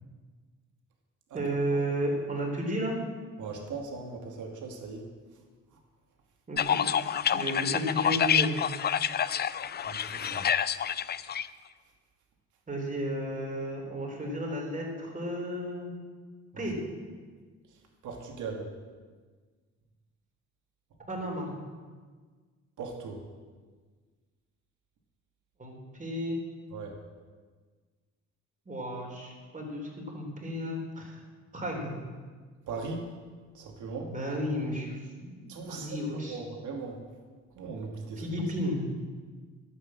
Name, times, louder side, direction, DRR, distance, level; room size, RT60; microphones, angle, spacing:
voice 1, 1.3-3.0 6.5-6.8 7.3-8.6 12.7-15.9 16.6-16.8 21.1-21.5 25.6-26.4 28.7-31.2 31.5-31.9 34.1-35.0 35.4-36.4 38.2-38.8, equal, 25° right, -1 dB, 3.9 m, -33 dB
voice 2, 3.4-5.0 9.8-10.4 16.5-16.7 18.0-18.7 22.8-23.2 26.7-27.0 32.7-33.1 33.5-34.1 35.5-37.0 37.6-38.2, right 4 dB, 75° right, 2 dB, 2.4 m, -39 dB
sound 1, 6.6-11.5, left 8 dB, 35° left, 0.4 m, -28 dB
11.5 x 8.7 x 7.6 m, 1.5 s
cardioid pair, 90°, 30 cm